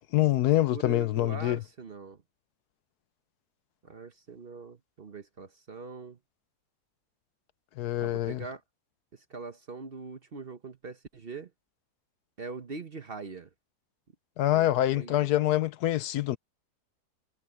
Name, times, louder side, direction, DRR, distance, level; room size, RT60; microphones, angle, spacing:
voice 1, 0.1-1.6 7.8-8.4 14.4-16.4, left 14 dB, 75° left, 1.2 m, -25 dB
voice 2, 0.7-2.2 3.8-6.2 8.0-8.6 9.3-11.5 12.4-13.5 14.5-15.3, right 4 dB, 40° right, 1.1 m, -42 dB
omnidirectional pair, 1.7 m